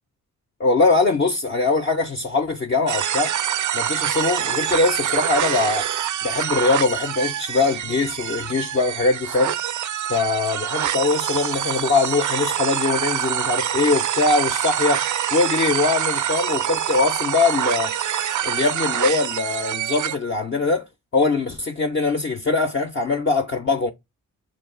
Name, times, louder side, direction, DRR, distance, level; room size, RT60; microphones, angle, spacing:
voice 1, 0.6-3.3 3.7-5.9 6.2-9.5 10.1-15.0 15.3-17.9 18.4-20.8 21.1-23.9, left 3 dB, 30° left, 0.5 m, -22 dB
sound 1, 2.9-20.2, right 10 dB, 50° right, 0.5 m, -25 dB
2.3 x 2.3 x 3.7 m
supercardioid pair, 45°, 38 cm